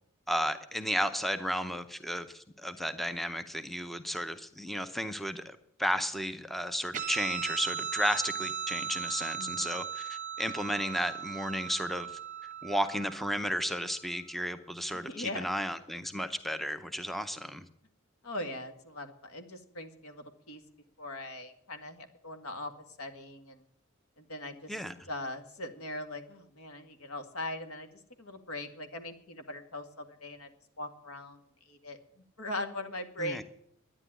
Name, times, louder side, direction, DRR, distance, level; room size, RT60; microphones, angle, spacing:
voice 1, 0.3-12.2 12.6-17.7 24.7-24.9 33.2-33.4, equal, ahead, 10 dB, 0.6 m, -33 dB
Guitar, 6.9-13.9, right 8 dB, 35° right, 0.9 m, -38 dB
voice 2, 9.4-9.8 14.9-15.5 18.2-20.6 21.0-22.7 23.0-23.6 24.2-24.8 25.1-30.5 30.8-33.4, left 1 dB, 85° left, 7 dB, 1.9 m, -40 dB
11.5 x 9.9 x 9.9 m, 0.73 s
head